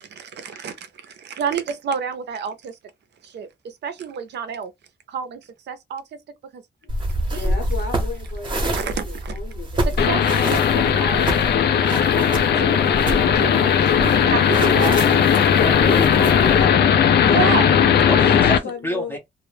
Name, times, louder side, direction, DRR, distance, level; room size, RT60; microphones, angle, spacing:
voice 1, 0.0-2.8 3.2-3.5 3.8-4.7 5.1-5.4 5.7-6.0 6.5-6.6 7.3-7.5 8.7-9.4 9.8-10.2 10.5-11.3 12.0-15.0 17.2-17.8, right 7 dB, 70° right, 0.5 m, -29 dB
sound 1, 6.9-16.6, right 1 dB, 25° right, 0.7 m, -28 dB
voice 2, 7.3-10.4 18.3-19.2, left 5 dB, 80° left, 0.9 m, -35 dB
sound 2, 10.0-18.6, left 8 dB, 65° left, 0.4 m, -17 dB
voice 3, 15.6-16.8 18.1-19.2, left 1 dB, 10° left, 0.6 m, -28 dB
2.1 x 2.1 x 3.1 m
wide cardioid pair, 150°, 18 cm